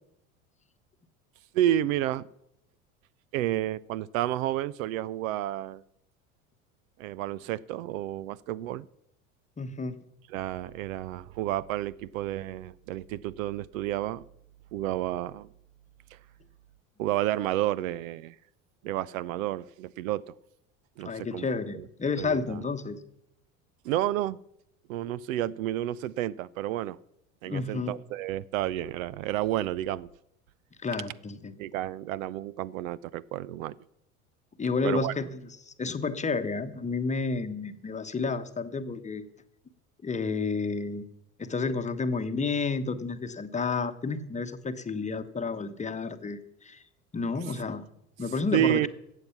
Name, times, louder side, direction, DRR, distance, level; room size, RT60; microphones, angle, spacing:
voice 1, 1.5-2.3 3.3-5.8 7.0-8.9 10.3-14.2 14.7-15.5 16.1-16.2 17.0-18.4 18.8-20.2 21.0-21.4 21.7-21.9 22.2-22.6 23.8-24.4 24.9-27.0 27.4-30.1 31.6-33.7 34.8-35.1 47.5-47.6 48.5-48.9, right 13 dB, 70° right, 21 dB, 0.5 m, -30 dB
voice 2, 9.6-10.0 21.0-23.0 27.5-27.9 30.8-31.5 34.6-39.2 40.0-41.0 41.4-46.8 47.1-47.8 48.2-48.8, left 4 dB, 15° left, 9 dB, 1.0 m, -31 dB
14.5 x 8.2 x 5.8 m, 0.78 s
hypercardioid pair, 80°, 42 cm